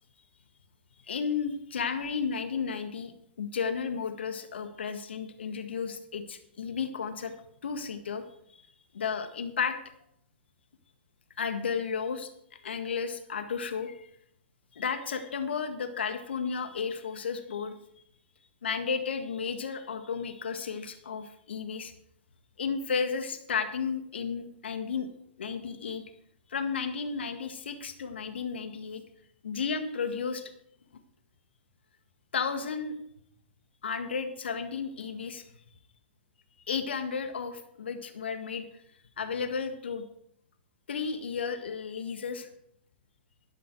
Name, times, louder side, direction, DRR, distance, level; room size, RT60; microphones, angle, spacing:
voice 1, 1.1-3.1 3.4-7.3 7.6-8.2 8.5-8.6 8.9-9.8 11.4-14.1 14.7-17.8 18.6-21.9 22.6-25.1 25.4-26.0 26.5-29.0 29.4-30.5 32.3-33.0 33.8-35.6 36.7-38.7 39.2-40.0 40.9-42.5, left 6 dB, 65° left, 8 dB, 1.8 m, -33 dB
12.5 x 11.0 x 4.7 m, 0.72 s
figure-of-eight pair, 110°, 6 cm